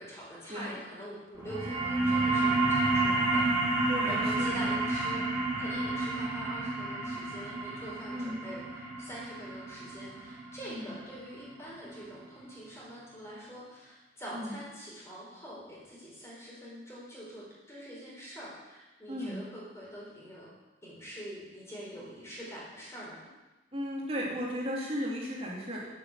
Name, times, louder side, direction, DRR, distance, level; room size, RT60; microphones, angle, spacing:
voice 1, 0.0-20.5 20.8-23.2, equal, 15° left, -6 dB, 4.2 m, -44 dB
sound 1, 1.4-12.5, right 2 dB, 10° right, 3.8 m, -30 dB
voice 2, 3.9-4.6 8.1-8.4 10.6-11.0 14.3-14.6 19.1-19.4 23.7-25.9, equal, 30° right, -4 dB, 2.8 m, -35 dB
9.6 x 8.3 x 7.2 m, 1.1 s
head